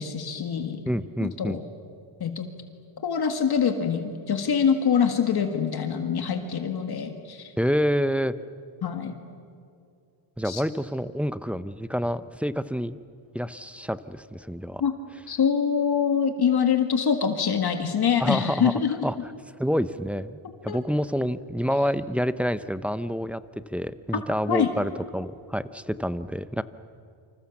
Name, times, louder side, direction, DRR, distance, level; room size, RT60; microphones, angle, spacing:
voice 1, 0.0-0.8 1.2-1.6 2.2-2.5 3.0-7.5 8.8-9.2 10.4-10.6 14.8-14.9 15.3-19.1 20.7-20.8 24.5-24.7, left 7 dB, 50° left, 6 dB, 1.9 m, -24 dB
voice 2, 0.9-1.6 7.6-8.3 10.4-13.0 13.3-14.8 18.2-19.3 19.6-26.6, equal, 5° right, 13 dB, 0.6 m, -28 dB
28.0 x 26.0 x 7.2 m, 2.4 s
cardioid pair, 135°, 49 cm